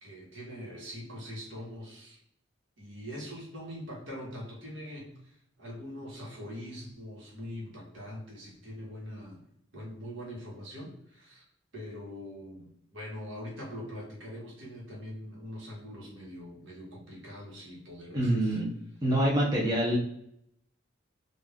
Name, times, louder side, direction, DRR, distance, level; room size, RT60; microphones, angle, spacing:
voice 1, 0.0-2.2 2.8-9.4 9.7-11.4 11.7-18.6, equal, 70° right, -3 dB, 1.2 m, -43 dB
voice 2, 18.1-18.7 19.0-20.0, right 1 dB, 20° right, -4 dB, 0.6 m, -25 dB
2.5 x 2.3 x 3.3 m, 0.72 s
head